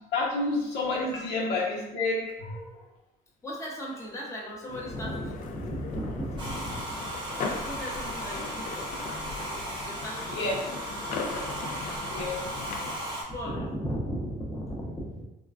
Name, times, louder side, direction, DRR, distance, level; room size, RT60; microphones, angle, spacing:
voice 1, 0.1-2.9 10.1-10.5 12.1-12.4, left 2 dB, 80° left, -5 dB, 0.9 m, -30 dB
voice 2, 3.4-8.9 9.8-10.6 13.3-15.2, equal, 15° left, -4 dB, 0.7 m, -36 dB
sound 1, 4.7-13.0, left 4 dB, 50° left, 0.4 m, -38 dB
Domestic sounds home sounds, 6.4-13.2, right 1 dB, 25° right, 0.8 m, -36 dB
3.6 x 2.2 x 2.3 m, 0.98 s
cardioid pair, 110°, 17 cm